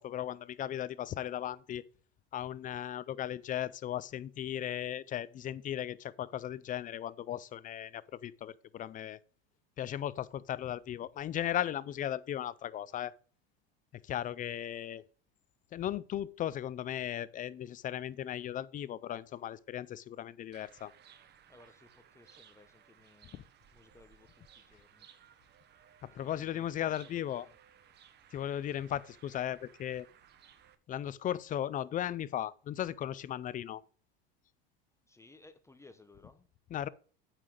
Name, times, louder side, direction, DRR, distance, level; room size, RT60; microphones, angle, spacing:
voice 1, 0.0-1.8 2.3-9.2 9.8-13.1 14.1-15.0 15.7-20.9 26.1-27.5 28.3-30.1 30.9-33.8 36.7-36.9, left 11 dB, 25° left, 0.4 m, -36 dB
sound 1, 20.5-30.8, right 9 dB, 35° right, 1.0 m, -61 dB
voice 2, 21.5-23.5 23.7-25.1 26.2-27.6 35.1-36.5, left 2 dB, 10° left, 0.8 m, -59 dB
9.1 x 5.8 x 5.0 m
supercardioid pair, 125°, 31 cm